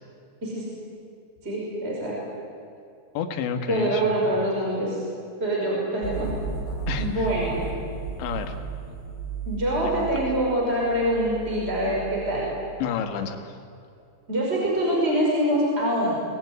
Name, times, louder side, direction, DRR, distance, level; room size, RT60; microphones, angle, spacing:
voice 1, 1.4-2.2 3.7-5.0 5.4-6.3 7.0-7.5 9.5-12.5 14.3-16.2, right 1 dB, 15° right, -3 dB, 5.5 m, -25 dB
voice 2, 3.2-4.3 6.9-7.3 8.2-8.6 9.8-10.1 12.8-13.6, left 7 dB, 75° left, 7 dB, 3.9 m, -30 dB
sound 1, 6.0-12.8, right 5 dB, 15° left, 3.5 m, -34 dB
25.0 x 20.5 x 9.6 m, 2.6 s
omnidirectional pair, 5.2 m